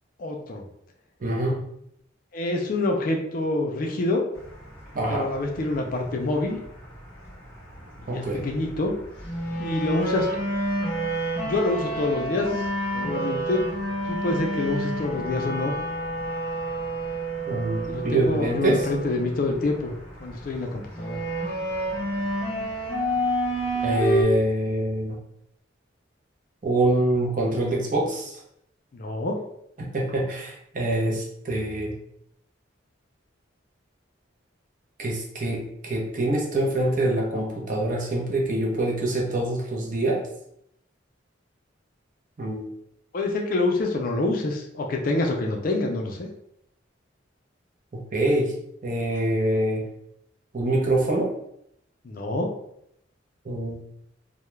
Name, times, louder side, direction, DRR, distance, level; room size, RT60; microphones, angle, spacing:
voice 1, 0.2-0.6 2.3-4.2 5.1-6.6 8.0-9.0 9.6-10.3 11.4-12.7 12.9-13.6 14.1-15.7 17.9-19.9 20.2-21.2 28.9-29.4 43.1-46.3 52.0-52.5, left 2 dB, 45° left, 1 dB, 0.3 m, -26 dB
voice 2, 1.2-1.6 4.9-5.2 8.1-8.5 17.5-18.8 23.8-25.2 26.6-28.3 29.9-31.9 35.0-40.2 42.4-42.7 48.1-48.5 48.8-49.8 50.5-51.3 53.5-53.8, right 1 dB, 40° right, -2 dB, 0.5 m, -25 dB
sound 1, 4.3-24.2, right 1 dB, 10° left, 0.7 m, -29 dB
2.2 x 2.0 x 3.0 m, 0.74 s
head